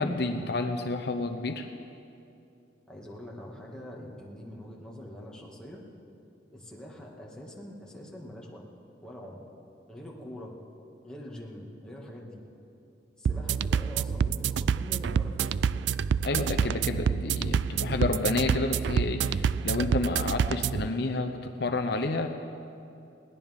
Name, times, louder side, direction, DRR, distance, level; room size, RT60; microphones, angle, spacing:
voice 1, 0.0-1.7 16.2-22.3, left 2 dB, 65° left, 5 dB, 0.8 m, -30 dB
voice 2, 2.9-5.8 6.5-8.6 9.0-9.4 9.9-10.5 11.0-12.4 13.2-16.0, equal, 5° left, -4 dB, 2.2 m, -44 dB
sound 1, 13.3-20.9, right 6 dB, 85° right, 0.3 m, -28 dB
21.0 x 18.0 x 3.7 m, 2.7 s
head